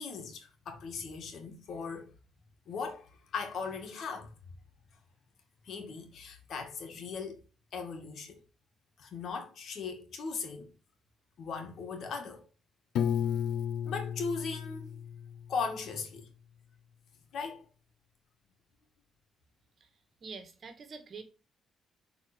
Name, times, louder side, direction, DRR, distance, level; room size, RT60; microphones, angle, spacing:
voice 1, 0.0-2.1 2.7-4.3 5.6-7.4 7.7-8.4 9.0-10.7 11.4-12.5 13.8-15.0 15.5-16.3 17.3-17.7, left 5 dB, 65° left, 2.2 m, -38 dB
Piano, 12.9-15.9, left 8 dB, 80° left, 0.7 m, -33 dB
voice 2, 20.2-21.2, right 4 dB, 50° right, 1.8 m, -45 dB
7.2 x 4.2 x 5.2 m
cardioid pair, 90°, 0 cm